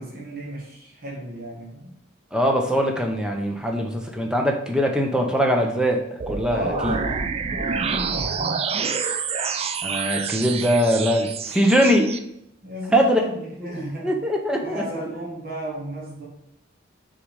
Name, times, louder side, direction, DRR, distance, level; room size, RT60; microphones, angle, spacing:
voice 1, 0.0-1.9 6.4-9.0 12.6-14.2 14.6-16.3, right 1 dB, 45° right, -4 dB, 1.6 m, -34 dB
voice 2, 2.3-7.0 9.8-12.1 12.9-13.2 14.0-14.8, equal, 5° right, 2 dB, 0.8 m, -21 dB
sound 1, 6.2-12.2, right 5 dB, 30° right, 0.4 m, -27 dB
6.6 x 3.9 x 4.8 m, 0.79 s
head